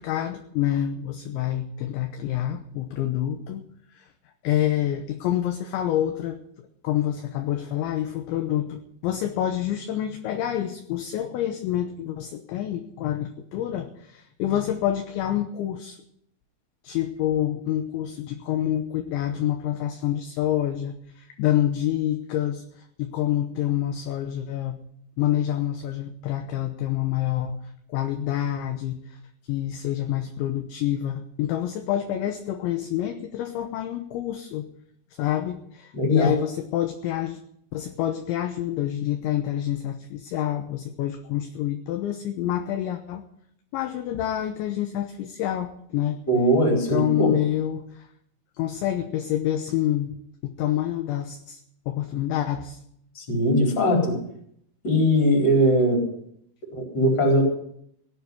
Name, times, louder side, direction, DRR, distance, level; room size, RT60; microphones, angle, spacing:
voice 1, 0.0-3.6 3.9-4.1 4.4-16.0 16.8-24.8 25.2-27.6 27.9-29.2 29.5-34.7 35.2-37.4 37.7-43.2 43.7-46.2 46.7-48.1 48.6-52.8, left 12 dB, 75° left, 6 dB, 3.0 m, -27 dB
voice 2, 35.9-36.3 46.3-47.3 53.2-54.2 54.8-56.0 56.7-57.4, equal, 25° left, 0 dB, 4.1 m, -20 dB
18.0 x 6.8 x 9.6 m, 0.71 s
omnidirectional pair, 5.9 m